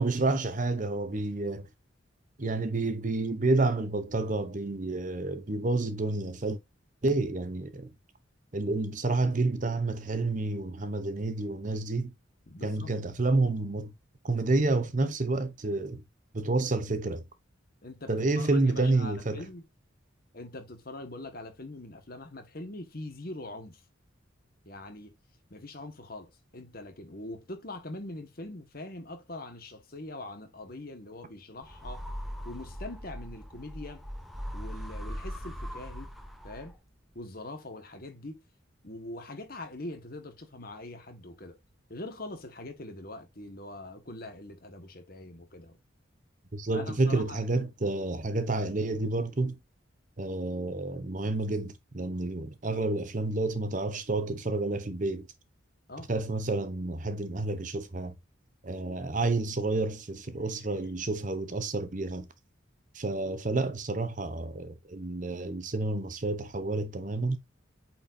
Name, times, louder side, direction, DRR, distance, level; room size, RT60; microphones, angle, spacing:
voice 1, 0.0-1.7 2.4-6.6 7.0-7.9 8.5-12.1 12.6-13.9 14.2-16.0 16.3-17.2 18.1-19.4 46.5-49.6 50.2-55.3 56.1-58.1 58.6-62.3 62.9-67.4, right 2 dB, 40° right, 0.9 m, -29 dB
voice 2, 12.5-12.9 17.8-19.7 20.3-23.8 24.6-25.2 25.5-32.1 32.4-34.1 34.5-36.1 36.4-36.8 37.1-38.4 38.8-41.6 41.9-45.8 46.7-47.4 55.9-56.1, left 2 dB, 50° left, 1.7 m, -43 dB
sound 1, 31.6-36.9, equal, ahead, 1.0 m, -40 dB
8.6 x 4.5 x 2.7 m
head